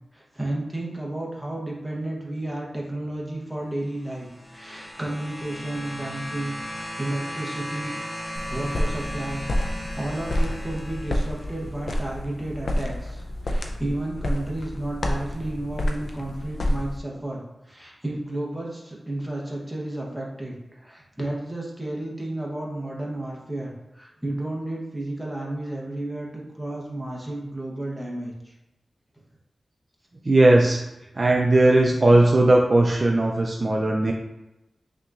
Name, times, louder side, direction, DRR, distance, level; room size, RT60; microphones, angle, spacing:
voice 1, 0.1-8.0 8.5-9.4 9.9-28.5, right 1 dB, 5° right, -3 dB, 1.0 m, -32 dB
sound 1, 3.9-11.7 12.8-12.9, equal, 30° left, 1.0 m, -36 dB
sound 2, 8.3-17.0, left 1 dB, 70° left, 0.5 m, -29 dB
voice 2, 30.2-30.8 31.2-34.1, right 2 dB, 35° right, -1 dB, 0.4 m, -18 dB
5.7 x 2.9 x 2.5 m, 0.95 s
wide cardioid pair, 125°, 0 cm